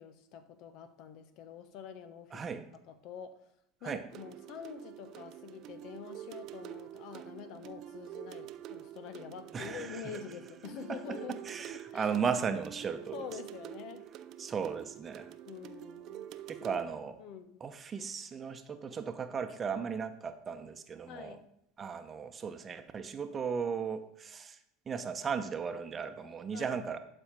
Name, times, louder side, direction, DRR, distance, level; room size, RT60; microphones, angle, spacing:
voice 1, 0.0-2.4 2.9-3.4 3.8-12.1 13.1-14.1 15.5-16.3 16.7-16.8 17.2-17.6 21.1-21.5 26.5-26.8, left 7 dB, 55° left, 11 dB, 0.9 m, -46 dB
voice 2, 2.3-2.6 3.8-4.0 9.5-10.2 10.9-11.0 11.5-13.2 14.4-15.3 16.5-17.2 17.6-21.4 21.8-24.6 24.9-27.0, right 6 dB, 30° right, 8 dB, 0.9 m, -36 dB
sound 1, 4.1-16.8, right 12 dB, 50° right, 0.6 m, -47 dB
11.5 x 4.5 x 5.1 m, 0.77 s
hypercardioid pair, 85°, 0 cm